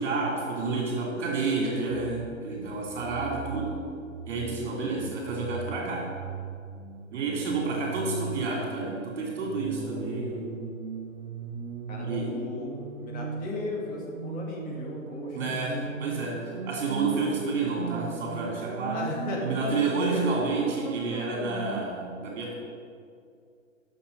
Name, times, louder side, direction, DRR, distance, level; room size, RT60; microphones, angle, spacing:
voice 1, 0.0-3.7 4.2-6.1 7.1-10.6 12.0-12.3 15.3-19.1 19.4-22.5, right 3 dB, 50° right, -3 dB, 2.9 m, -30 dB
sound 1, 1.9-21.9, right 5 dB, 80° right, 0.9 m, -38 dB
voice 2, 9.7-10.0 10.3-10.4 11.9-12.7 13.0-15.8 16.0-16.2 17.3-17.4 18.9-19.4 19.7-20.2, left 2 dB, 20° left, -2 dB, 2.1 m, -37 dB
11.5 x 6.7 x 5.4 m, 2.3 s
hypercardioid pair, 130°, 40 cm